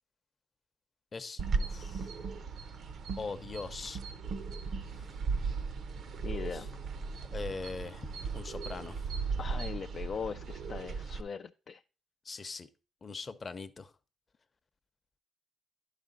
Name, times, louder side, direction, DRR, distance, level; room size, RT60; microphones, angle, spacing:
voice 1, 1.1-2.1 3.2-4.0 6.5-6.7 7.3-8.1 8.3-9.1 12.2-12.7 13.0-13.9, left 4 dB, 35° left, 0.7 m, -41 dB
sound 1, 1.4-11.2, right 4 dB, 65° right, 0.7 m, -37 dB
voice 2, 6.2-6.7 9.4-11.8, left 6 dB, 50° left, 0.3 m, -40 dB
11.0 x 5.0 x 3.9 m
cardioid pair, 90°, 0 cm